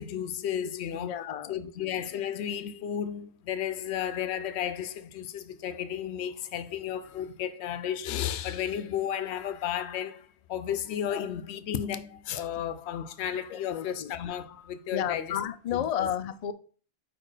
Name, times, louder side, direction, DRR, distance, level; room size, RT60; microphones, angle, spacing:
voice 1, 0.0-1.1 1.5-15.4 15.7-16.1, left 9 dB, 85° left, 0.9 m, -33 dB
voice 2, 0.9-1.7 11.1-11.3 13.5-14.1 14.9-16.5, left 9 dB, 55° left, 0.4 m, -32 dB
4.7 x 4.4 x 4.8 m
omnidirectional pair, 1.1 m